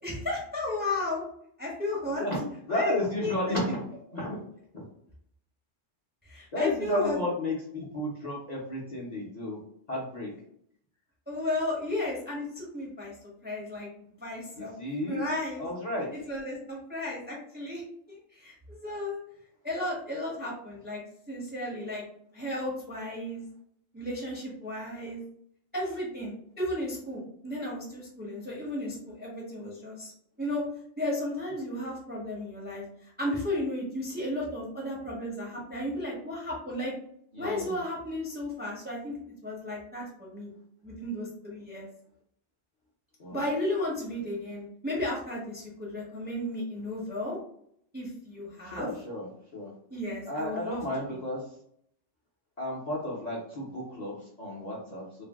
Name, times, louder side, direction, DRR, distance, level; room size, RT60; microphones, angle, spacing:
voice 1, 0.0-1.2 1.6-2.2 2.7-2.9 3.2-3.6 6.2-7.2 11.3-13.1 13.4-14.7 15.1-15.7 16.3-17.8 18.1-19.2 19.6-21.0 21.3-22.0 22.3-23.5 23.9-25.3 25.7-30.1 30.4-30.6 31.0-36.9 37.4-39.2 39.4-40.5 40.8-41.9 43.3-47.4 47.9-48.9 49.9-50.8 51.1-51.2, left 1 dB, 10° right, -4 dB, 0.6 m, -34 dB
voice 2, 2.2-4.4 4.7-4.8 6.5-9.6 9.9-10.3 14.5-15.3 15.6-16.1 37.3-37.8 43.2-43.4 48.6-49.3 49.5-49.7 50.3-51.6 52.6-55.2, left 1 dB, 45° left, -5 dB, 0.7 m, -33 dB
2.5 x 2.1 x 3.4 m, 0.68 s
omnidirectional pair, 1.2 m